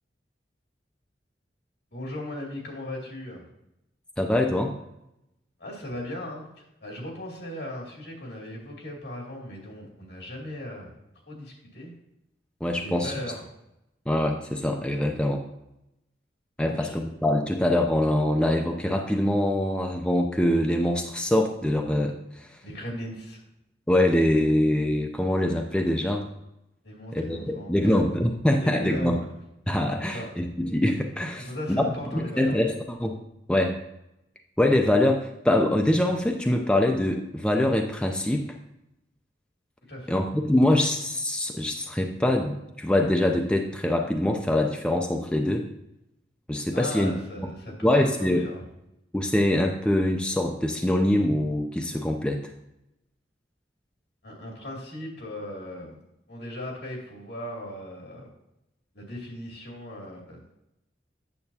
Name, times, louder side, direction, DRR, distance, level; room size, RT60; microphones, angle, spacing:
voice 1, 1.9-3.4 5.6-10.9 11.3-11.9 12.8-13.4 16.6-16.9 22.6-23.4 26.8-27.9 28.6-29.3 30.0-30.3 31.4-32.6 39.9-40.2 46.7-47.9 48.2-48.6 54.2-56.0 56.3-58.3 58.9-60.5, left 1 dB, 70° left, -2 dB, 2.4 m, -38 dB
voice 2, 4.2-4.7 12.6-13.1 14.1-15.4 16.6-22.6 23.9-26.3 27.1-29.2 29.7-31.5 32.1-33.2 33.5-33.8 34.6-38.6 40.1-45.7 46.5-47.1 47.8-48.4 49.1-52.4, left 1 dB, 5° left, 2 dB, 0.4 m, -24 dB
8.6 x 7.0 x 2.7 m, 0.86 s
head